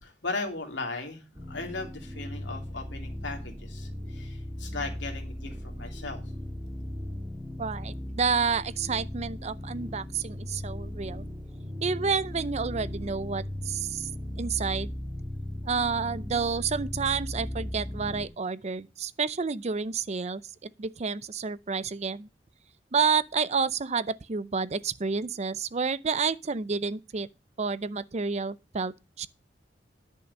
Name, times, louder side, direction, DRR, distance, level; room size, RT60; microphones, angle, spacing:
voice 1, 0.0-6.2, left 3 dB, 90° left, 2.8 m, -37 dB
sound 1, 1.3-18.3, left 1 dB, 10° right, 1.8 m, -37 dB
voice 2, 7.6-11.3 11.8-14.1 14.4-14.9 15.6-22.3 22.9-27.3 27.6-29.3, right 5 dB, 40° right, 0.5 m, -30 dB
10.5 x 6.5 x 5.4 m
head